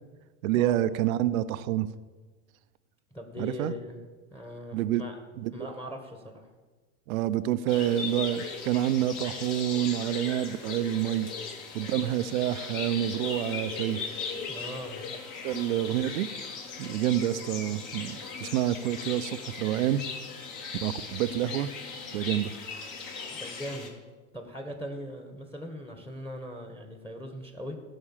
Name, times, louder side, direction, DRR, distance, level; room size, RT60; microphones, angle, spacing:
voice 1, 0.4-1.9 3.4-3.7 4.7-5.0 5.4-5.7 7.1-11.3 11.7-14.0 15.4-16.3 16.8-20.0 20.8-21.7 22.1-22.5, right 12 dB, 70° right, 13 dB, 0.8 m, -28 dB
voice 2, 3.1-4.0 4.3-5.2 5.5-6.5 14.5-15.0 23.3-23.9 24.3-27.8, equal, 5° left, 5 dB, 1.6 m, -40 dB
sound 1, 7.7-23.9, left 5 dB, 45° left, 3.3 m, -38 dB
16.5 x 5.6 x 7.4 m, 1.3 s
hypercardioid pair, 110°, 43 cm